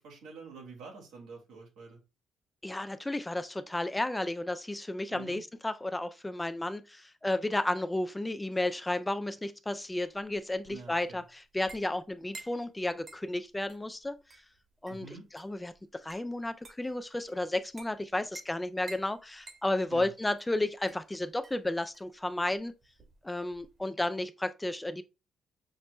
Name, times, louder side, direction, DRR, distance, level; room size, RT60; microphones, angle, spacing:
voice 1, 0.0-2.0 5.1-5.4 10.7-11.2 14.9-15.3 19.9-20.1, right 4 dB, 90° right, 1.7 m, -47 dB
voice 2, 2.6-14.2 14.8-15.1 15.3-15.7 16.0-22.7 23.2-25.0, left 1 dB, 10° left, 0.4 m, -33 dB
sound 1, 9.8-23.8, right 3 dB, 45° right, 1.3 m, -54 dB
5.8 x 2.1 x 3.1 m
cardioid pair, 90°, 0 cm